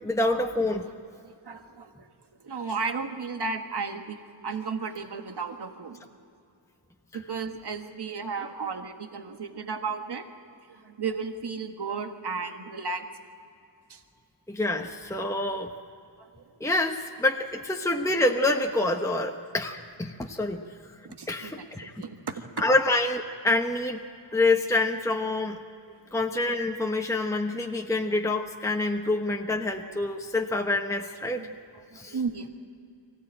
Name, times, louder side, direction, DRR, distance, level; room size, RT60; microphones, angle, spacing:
voice 1, 0.0-0.9 14.5-15.7 16.6-21.0 21.3-22.0 22.6-24.0 24.3-25.6 26.1-31.5 31.9-32.1, left 2 dB, 5° left, 3 dB, 1.0 m, -27 dB
voice 2, 1.2-2.1 2.4-6.0 7.1-10.3 10.7-13.1 13.9-14.0 16.2-16.4 21.2-22.3 25.8-26.0 31.4-32.5, right 4 dB, 60° right, 6 dB, 1.7 m, -34 dB
23.5 x 15.5 x 9.0 m, 2.5 s
wide cardioid pair, 100°, 46 cm